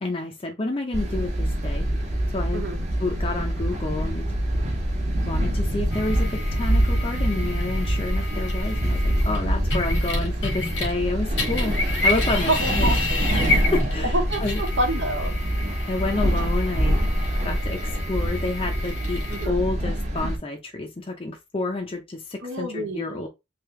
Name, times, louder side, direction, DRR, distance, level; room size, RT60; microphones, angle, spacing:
voice 1, 0.0-1.9 2.3-2.6 3.0-4.3 5.3-12.9 13.3-14.6 15.9-17.0 17.4-23.3, left 2 dB, 30° left, 0.5 m, -29 dB
sound 1, 0.9-20.4, equal, 35° right, 1.0 m, -25 dB
sound 2, 5.9-11.1 11.3-19.5, left 2 dB, 85° left, 1.4 m, -31 dB
voice 2, 12.3-13.4 14.0-15.3 19.3-19.6 22.4-23.3, right 1 dB, 85° right, 1.1 m, -28 dB
3.3 x 2.7 x 3.2 m
head